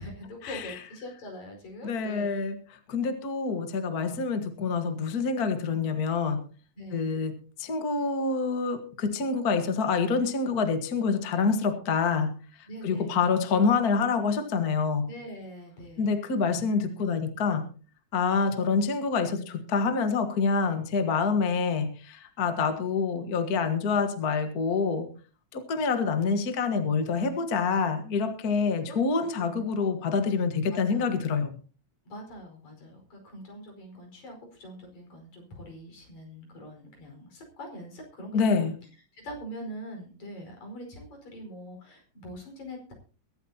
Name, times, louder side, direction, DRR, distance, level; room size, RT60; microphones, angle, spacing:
voice 1, 0.0-2.3 6.8-7.2 12.7-13.2 15.1-16.2 28.8-29.8 30.7-31.3 32.0-38.7 39.1-42.9, equal, 75° left, 2 dB, 6.4 m, -43 dB
voice 2, 1.8-2.6 2.9-6.4 6.9-7.3 7.6-12.3 12.8-15.1 16.0-17.6 18.1-25.1 25.5-31.5 38.3-38.8, left 5 dB, 40° left, 7 dB, 1.5 m, -26 dB
22.5 x 12.5 x 2.8 m, 0.37 s
omnidirectional pair, 3.3 m